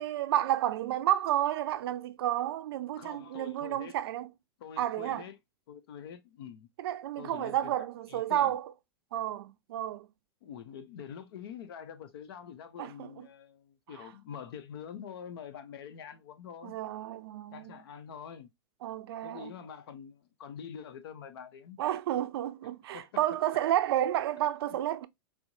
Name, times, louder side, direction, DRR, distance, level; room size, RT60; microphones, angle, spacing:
voice 1, 0.0-4.3 4.8-5.3 6.8-8.7 9.1-10.1 12.8-13.3 16.6-17.8 18.8-19.5 21.8-25.1, right 12 dB, 70° right, 0.4 m, -31 dB
voice 2, 3.0-3.9 4.6-5.3 5.7-6.7 7.2-8.6 10.4-16.8 17.5-18.5 19.2-21.8 22.9-23.1, left 8 dB, 70° left, 0.7 m, -45 dB
4.3 x 2.1 x 2.6 m
hypercardioid pair, 110°, 13 cm